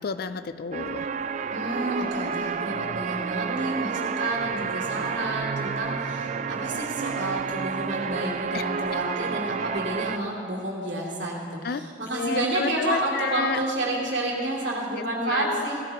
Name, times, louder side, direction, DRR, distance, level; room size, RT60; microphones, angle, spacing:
voice 1, 0.0-1.1 8.5-8.6 11.6-11.9 12.1-13.6 15.2-15.7, left 5 dB, 55° left, 11 dB, 0.4 m, -30 dB
sound 1, 0.7-10.2, right 6 dB, 40° right, 0.3 m, -30 dB
voice 2, 1.5-15.8, right 2 dB, 70° right, -3 dB, 2.7 m, -29 dB
16.5 x 13.0 x 3.5 m, 2.7 s
head